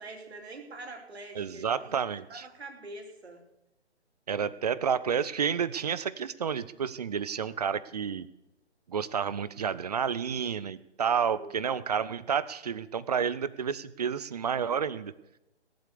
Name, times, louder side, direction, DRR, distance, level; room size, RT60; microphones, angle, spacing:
voice 1, 0.0-1.9 2.3-3.4 11.3-11.8, right 2 dB, 65° right, 3 dB, 3.1 m, -45 dB
voice 2, 1.3-2.5 4.3-8.3 8.9-15.1, right 7 dB, 35° right, 17 dB, 0.5 m, -30 dB
18.0 x 7.8 x 6.8 m, 0.93 s
figure-of-eight pair, 140°, 35 cm